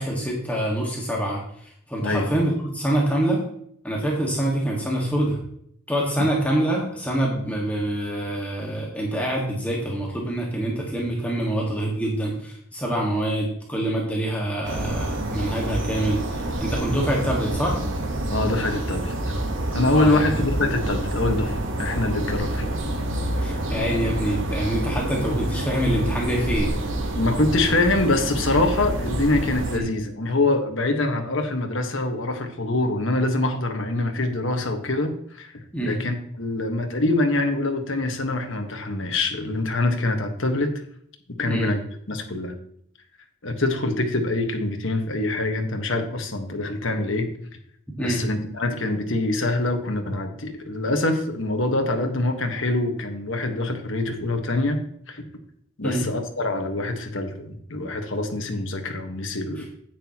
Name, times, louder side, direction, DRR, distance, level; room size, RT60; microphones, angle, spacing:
voice 1, 0.0-3.4 3.8-5.4 5.9-17.8 19.9-20.4 23.4-26.7 29.7-29.9 35.7-36.0 41.4-41.7 48.0-48.2 55.8-56.1 59.6-59.7, right 1 dB, 5° left, -3 dB, 1.7 m, -25 dB
sound 1, 14.6-29.8, right 1 dB, 65° right, 1.2 m, -27 dB
voice 2, 18.3-19.1 19.7-22.8 27.1-35.5 35.8-40.7 41.4-41.8 42.1-42.5 43.4-47.3 48.0-54.8 55.1-55.2 55.8-59.7, left 2 dB, 65° left, 4 dB, 1.5 m, -24 dB
10.0 x 9.2 x 3.0 m, 0.67 s
head